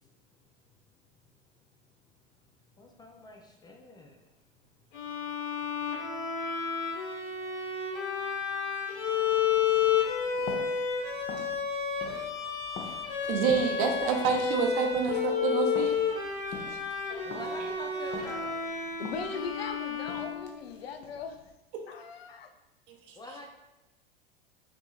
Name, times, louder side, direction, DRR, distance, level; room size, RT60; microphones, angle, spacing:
voice 1, 2.8-4.2 17.2-18.6 23.2-23.5, left 2 dB, 15° left, 2 dB, 0.3 m, -44 dB
Bowed string instrument, 4.9-21.0, left 7 dB, 60° left, 1.2 m, -31 dB
sound 1, 9.3-21.5, left 4 dB, 35° left, 0.7 m, -47 dB
voice 2, 13.3-15.9 17.1-17.2 22.9-23.2, right 6 dB, 55° right, 2 dB, 0.8 m, -28 dB
voice 3, 19.0-21.4 21.9-22.5, left 5 dB, 80° left, 7 dB, 0.5 m, -39 dB
6.1 x 2.6 x 2.3 m, 0.98 s
hypercardioid pair, 90°, 30 cm